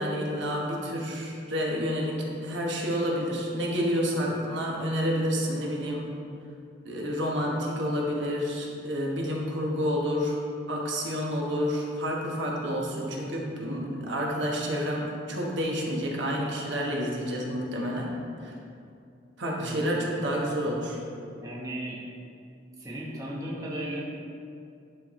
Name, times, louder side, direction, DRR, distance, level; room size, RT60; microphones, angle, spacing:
voice 1, 0.0-6.1 6.8-10.4 10.7-18.1 18.4-18.5 19.4-21.0, equal, 65° right, -2 dB, 1.1 m, -29 dB
voice 2, 19.6-19.9 21.4-22.0 22.8-24.0, right 1 dB, 20° right, -5 dB, 0.9 m, -35 dB
11.0 x 4.6 x 3.1 m, 2.5 s
head